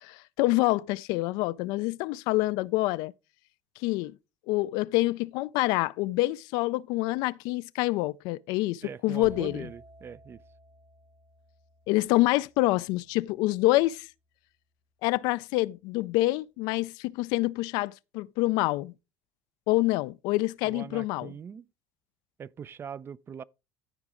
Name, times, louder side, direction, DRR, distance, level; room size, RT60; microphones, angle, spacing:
voice 1, 0.0-3.1 3.8-4.1 4.5-9.7 11.9-14.1 15.0-18.9 19.7-21.3, left 19 dB, 70° left, 0.3 m, -27 dB
voice 2, 8.8-10.4 20.6-21.7 22.4-23.4, right 7 dB, 30° right, 0.4 m, -42 dB
sound 1, 9.2-13.0, right 1 dB, 85° right, 4.0 m, -53 dB
13.5 x 4.8 x 3.7 m
supercardioid pair, 85°, 7 cm